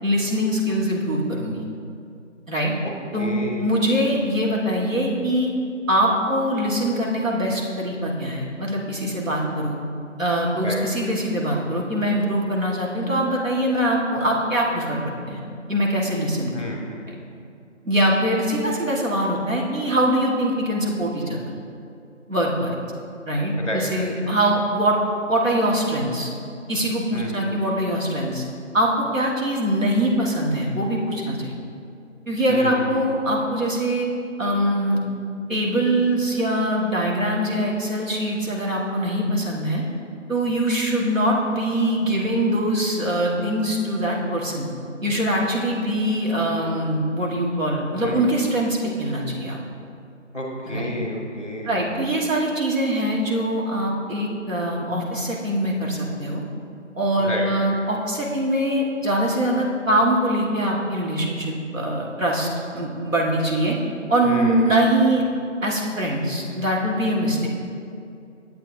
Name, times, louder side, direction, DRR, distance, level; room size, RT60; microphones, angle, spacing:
voice 1, 0.0-1.7 2.5-2.7 3.1-3.3 3.6-5.5 5.9-9.8 10.2-15.0 15.3-15.4 15.7-16.5 17.1-17.2 17.8-21.4 22.3-22.7 23.3-25.0 25.3-26.3 26.7-28.4 28.7-31.5 32.3-34.1 34.4-35.0 35.5-39.8 40.3-44.7 45.0-49.6 50.7-50.9 51.6-56.4 57.0-63.7 64.1-65.2 65.6-67.5, right 1 dB, 90° right, -2 dB, 1.7 m, -23 dB
voice 2, 3.2-3.9 10.6-10.8 16.5-16.8 23.6-24.3 27.1-27.4 32.5-33.0 48.0-48.2 50.3-51.9 57.2-57.5 64.2-64.6, left 1 dB, 30° left, -1 dB, 0.9 m, -31 dB
9.2 x 7.9 x 2.7 m, 2.5 s
figure-of-eight pair, 170°, 38 cm